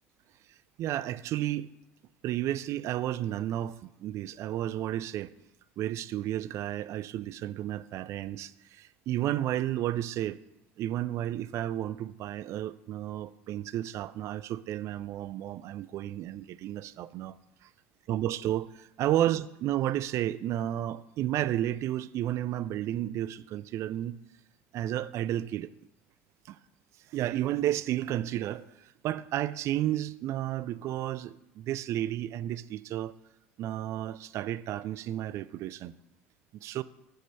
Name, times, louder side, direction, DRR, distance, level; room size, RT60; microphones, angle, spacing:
voice 1, 0.8-1.7 2.2-5.3 5.8-10.4 10.8-17.4 17.6-17.7 18.1-24.2 24.7-25.7 26.5-26.6 27.1-33.1 33.6-35.9 36.6-36.8, right 12 dB, 45° right, 0.3 m, -32 dB
7.6 x 5.2 x 5.6 m
figure-of-eight pair, 65°, 7 cm